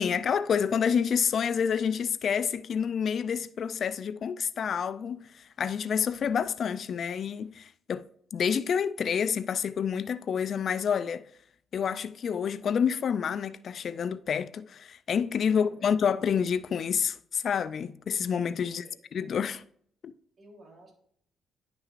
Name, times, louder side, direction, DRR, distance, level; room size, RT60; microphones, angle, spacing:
voice 1, 0.0-8.1 8.3-11.2 11.7-18.8 19.1-19.6 20.0-20.1, left 7 dB, 55° left, 0.4 m, -28 dB
voice 2, 15.5-16.3 18.6-19.0 20.4-20.9, right 1 dB, 40° right, 3.4 m, -55 dB
10.5 x 5.8 x 2.5 m
cardioid pair, 90°, 0 cm